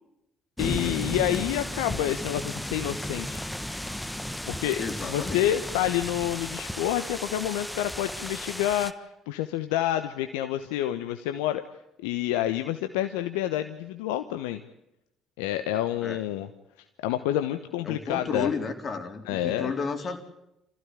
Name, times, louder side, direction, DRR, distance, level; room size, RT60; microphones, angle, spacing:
voice 1, 0.6-3.4 4.5-11.6 12.0-14.6 15.4-16.5 17.0-18.5 19.2-19.7, left 12 dB, 75° left, 9 dB, 1.0 m, -28 dB
sound 1, 0.6-8.9, left 1 dB, 5° left, 1.4 m, -34 dB
voice 2, 4.8-5.4 16.0-16.2 17.8-20.2, left 5 dB, 45° left, 6 dB, 3.8 m, -32 dB
26.5 x 15.5 x 9.8 m, 0.88 s
hypercardioid pair, 50°, 0 cm